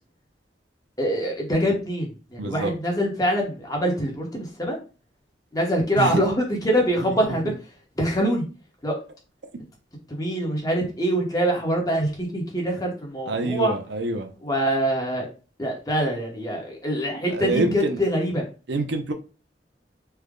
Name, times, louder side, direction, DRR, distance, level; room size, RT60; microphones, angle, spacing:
voice 1, 1.0-4.8 5.5-7.5 8.0-8.4 8.8-8.9 10.1-13.7 14.4-15.3 15.6-18.5, equal, 20° left, 1.0 m, -24 dB
voice 2, 2.4-2.7 6.0-6.2 7.2-7.5 13.3-14.3 17.3-18.0 18.7-19.1, right 2 dB, 90° right, 0.6 m, -26 dB
3.3 x 2.1 x 3.6 m
head